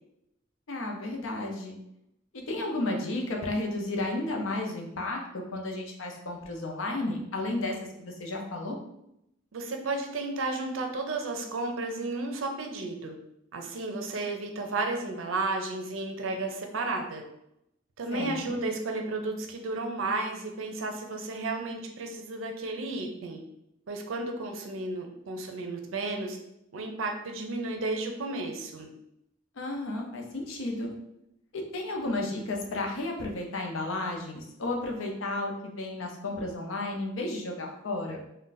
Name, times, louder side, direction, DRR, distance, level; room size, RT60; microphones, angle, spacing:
voice 1, 0.7-1.8 2.3-8.8 18.1-18.4 29.5-30.9 31.5-38.2, left 2 dB, 75° left, 1 dB, 0.6 m, -33 dB
voice 2, 9.5-13.2 13.5-17.2 18.0-23.4 23.9-26.4 26.7-28.9, right 2 dB, 75° right, 4 dB, 0.5 m, -33 dB
2.5 x 2.2 x 3.9 m, 0.83 s
head